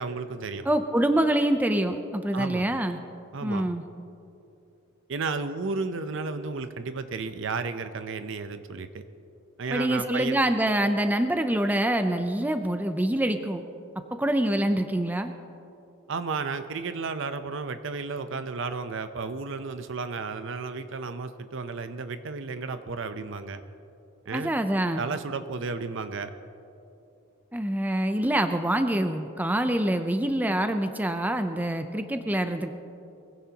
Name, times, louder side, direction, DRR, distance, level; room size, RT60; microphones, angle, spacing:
voice 1, 0.0-0.7 2.3-2.7 3.3-3.7 5.1-9.0 9.6-10.4 16.1-23.6 24.3-24.5 25.0-26.3, right 4 dB, 60° right, 10 dB, 0.6 m, -33 dB
voice 2, 0.7-3.0 3.4-3.8 9.7-13.6 14.2-15.3 24.3-25.0 27.5-32.7, right 1 dB, 10° right, 7 dB, 0.5 m, -25 dB
23.0 x 16.0 x 2.9 m, 2.8 s
head